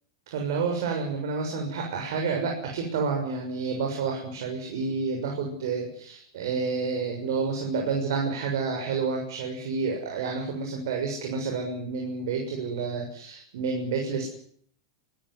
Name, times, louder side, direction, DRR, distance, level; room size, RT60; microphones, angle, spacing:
voice 1, 0.3-14.3, right 4 dB, 70° right, 2 dB, 6.8 m, -29 dB
26.0 x 14.5 x 9.9 m, 0.63 s
hypercardioid pair, 120°, 2 cm